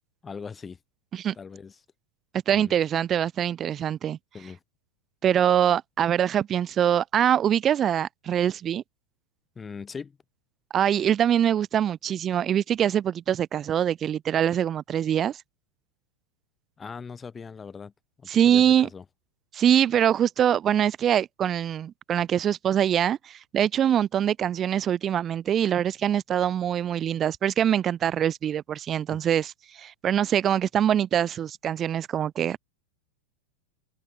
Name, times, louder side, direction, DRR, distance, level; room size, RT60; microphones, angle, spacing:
voice 1, 0.2-0.8 1.3-1.8 2.5-2.7 4.3-4.6 9.6-10.2 16.8-17.9 18.2-19.0 29.1-29.2, left 5 dB, 15° left, 4.3 m, -40 dB
voice 2, 2.5-4.2 5.2-8.8 10.7-15.4 18.3-18.9 19.5-32.6, right 9 dB, 25° right, 0.6 m, -24 dB
figure-of-eight pair, 90°, 0 cm